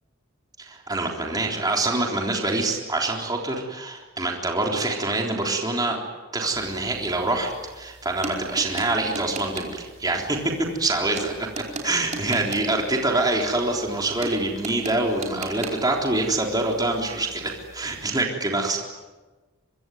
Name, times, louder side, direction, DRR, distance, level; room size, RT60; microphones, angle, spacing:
voice 1, 0.6-6.0 6.3-18.8, right 2 dB, 20° right, 0 dB, 3.7 m, -25 dB
sound 1, 6.5-18.0, right 3 dB, 35° right, 4.9 m, -39 dB
25.0 x 24.5 x 9.4 m, 1.2 s
head